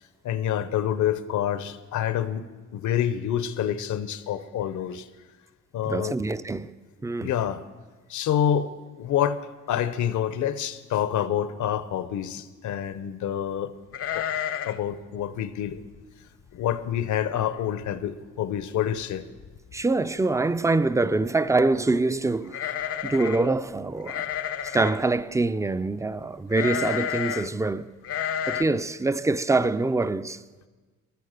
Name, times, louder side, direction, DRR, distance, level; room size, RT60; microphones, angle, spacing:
voice 1, 0.2-2.4 2.7-5.1 5.7-6.2 7.2-7.6 8.1-8.7 9.0-9.4 9.7-13.7 14.1-14.3 14.6-15.8 16.5-19.2, left 10 dB, 75° left, 0.9 m, -27 dB
voice 2, 5.8-6.7 7.0-7.3 19.7-22.7 23.0-24.3 24.6-27.9 28.5-30.4, right 3 dB, 10° right, 0.5 m, -25 dB
sound 1, 13.9-14.9 15.2-15.3 15.7-16.0 16.5-16.6 16.9-17.4 17.8-17.9 19.0-19.1 19.4-19.8 22.5-23.5 24.1-25.0 26.5-27.5 28.0-28.6, left 9 dB, 50° left, 0.6 m, -30 dB
15.0 x 10.5 x 6.6 m
cardioid pair, 90°, 30 cm